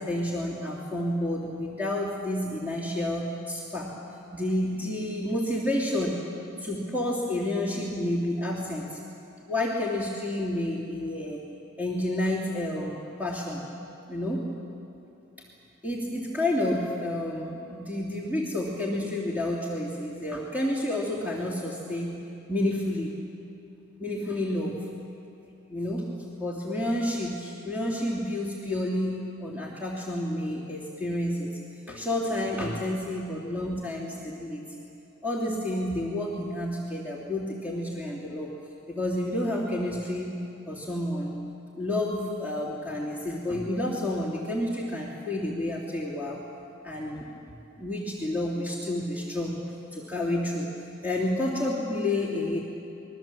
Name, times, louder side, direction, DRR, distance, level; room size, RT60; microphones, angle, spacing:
voice 1, 0.0-3.9 4.3-6.2 6.6-9.0 9.5-11.4 11.8-13.7 14.1-14.5 15.8-22.2 22.5-23.1 24.0-24.8 25.7-26.1 26.4-31.6 31.9-34.7 35.2-38.5 38.9-40.4 40.7-41.4 41.7-46.4 46.8-47.3 47.8-49.6 49.9-50.7 51.0-52.6, left 1 dB, 10° right, -5 dB, 2.7 m, -30 dB
27.0 x 22.0 x 7.6 m, 2.8 s
head